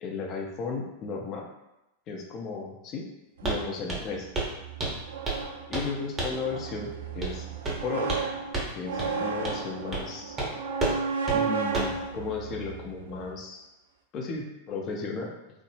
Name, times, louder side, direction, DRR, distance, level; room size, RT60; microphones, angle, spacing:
voice 1, 0.0-1.5 2.1-3.1 3.4-4.3 5.7-7.5 7.8-8.2 8.7-10.4 11.3-13.7 14.1-15.3, left 4 dB, 35° left, 1 dB, 0.5 m, -35 dB
Walk footsteps, 3.4-3.6 3.9-4.1 4.3-4.5 4.8-5.5 5.7-5.9 6.2-6.4 7.2-7.4 7.6-8.3 8.5-8.7 9.0-9.1 9.4-9.6 9.9-10.1 10.4-10.5 10.8-11.0 11.3-11.4 11.7-12.0, right 2 dB, 20° right, 0.7 m, -30 dB
sound 1, 3.4-13.3, right 5 dB, 60° right, 0.3 m, -34 dB
3.0 x 2.0 x 3.1 m, 0.92 s
figure-of-eight pair, 90°, 0 cm